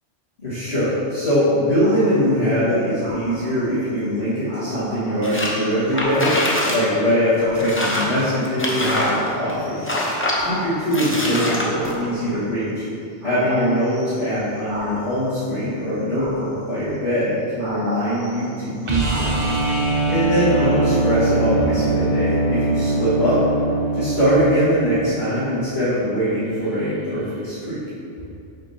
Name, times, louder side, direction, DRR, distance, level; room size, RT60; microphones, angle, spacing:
voice 1, 0.4-9.8 10.4-12.8 13.2-19.4 20.1-23.4 23.9-27.8, equal, 65° left, -14 dB, 2.0 m, -22 dB
sound 1, 1.8-2.4 3.0-3.7 4.2-4.3 4.5-6.7 7.4-8.4 8.8-11.0 11.7-12.6 13.2-15.4 16.1-16.9 17.6-19.9 20.5-21.0, equal, 85° right, 1.8 m, -35 dB
sound 2, 5.2-5.6 5.9-6.8 7.1-7.2 7.6-9.5 9.8-10.4 10.9-11.9, left 1 dB, 15° left, 0.5 m, -24 dB
sound 3, 18.9-24.8 27.3-27.4, right 2 dB, 35° right, 0.5 m, -21 dB
6.5 x 5.7 x 2.8 m, 2.7 s
omnidirectional pair, 1.2 m